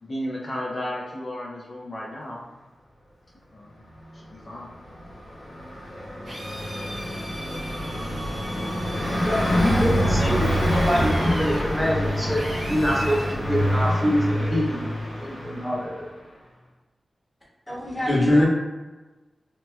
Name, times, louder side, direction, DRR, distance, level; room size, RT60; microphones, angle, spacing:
voice 1, 0.0-2.4 3.5-3.8 4.1-4.7, left 1 dB, 45° left, -4 dB, 0.5 m, -33 dB
Car passing by, 4.9-15.9, equal, 75° left, 1.0 m, -26 dB
Drill, 6.2-13.4, right 1 dB, 90° right, 1.1 m, -39 dB
voice 2, 9.0-14.9 15.2-15.9, equal, 5° right, -5 dB, 0.6 m, -25 dB
voice 3, 17.7-18.4, left 1 dB, 20° left, -6 dB, 1.1 m, -20 dB
3.0 x 2.2 x 3.1 m, 1.2 s
wide cardioid pair, 90°, 0 cm